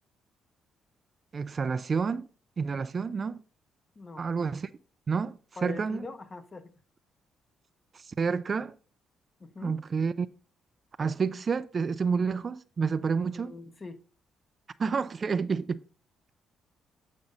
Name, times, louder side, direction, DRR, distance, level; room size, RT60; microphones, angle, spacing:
voice 1, 1.3-2.3 2.6-3.4 4.2-4.7 5.1-6.0 7.9-8.7 9.6-10.3 11.0-13.5 14.8-15.8, right 5 dB, 40° right, 0.4 m, -29 dB
voice 2, 5.6-6.7 9.4-9.8 13.2-14.0, left 3 dB, 30° left, 1.0 m, -42 dB
8.7 x 5.2 x 3.9 m
cardioid pair, 90°, 0 cm